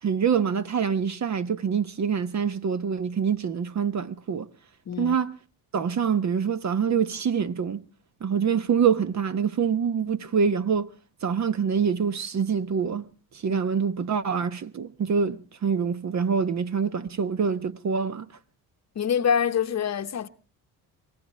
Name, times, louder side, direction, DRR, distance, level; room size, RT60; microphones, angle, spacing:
voice 1, 0.0-4.5 5.0-5.3 5.7-7.8 8.2-10.9 11.2-13.1 13.4-18.3, right 6 dB, 40° right, 1.0 m, -25 dB
voice 2, 4.9-5.2 13.5-13.6 18.9-20.3, left 7 dB, 40° left, 0.9 m, -25 dB
24.5 x 18.0 x 3.2 m
supercardioid pair, 80°, 41 cm